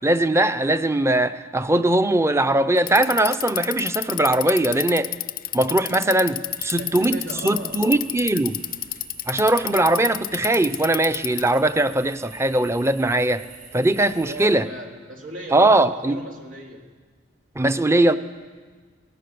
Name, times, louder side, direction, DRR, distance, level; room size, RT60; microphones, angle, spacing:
voice 1, 0.0-5.1 5.5-8.6 9.3-13.4 13.7-14.7 15.5-16.2 17.6-18.1, right 1 dB, 15° right, 11 dB, 0.7 m, -20 dB
Bicycle, 2.8-11.6, left 14 dB, 50° left, 0.5 m, -29 dB
sound 1, 6.5-14.5, right 5 dB, 50° right, 7.7 m, -46 dB
voice 2, 6.8-8.0 14.0-16.9, right 1 dB, 85° right, -1 dB, 3.9 m, -37 dB
24.0 x 18.0 x 6.9 m, 1.5 s
head